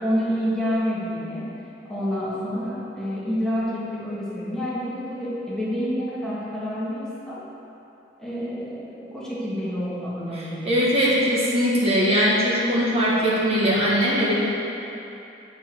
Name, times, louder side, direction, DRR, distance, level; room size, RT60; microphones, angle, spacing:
voice 1, 0.0-1.5 1.9-7.4 8.2-10.7, equal, 5° left, -9 dB, 1.6 m, -28 dB
voice 2, 10.3-14.5, equal, 35° right, -7 dB, 1.3 m, -21 dB
8.5 x 4.6 x 5.4 m, 2.8 s
head